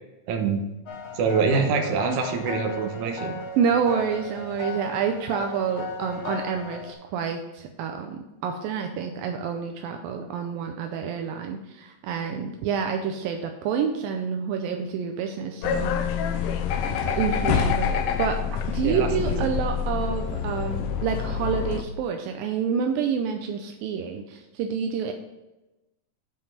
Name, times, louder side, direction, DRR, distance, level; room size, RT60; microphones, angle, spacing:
voice 1, 0.3-0.7 1.1-3.3 17.5-17.8 18.8-19.5, right 5 dB, 65° right, 3 dB, 2.3 m, -25 dB
sound 1, 0.9-6.9, left 2 dB, 60° left, 1.9 m, -36 dB
voice 2, 3.2-16.1 17.0-18.4 18.7-25.1, right 6 dB, 80° right, 4 dB, 2.4 m, -28 dB
sound 2, 15.6-21.8, left 7 dB, 80° left, 2.1 m, -26 dB
7.6 x 5.3 x 5.6 m, 1.0 s
omnidirectional pair, 4.1 m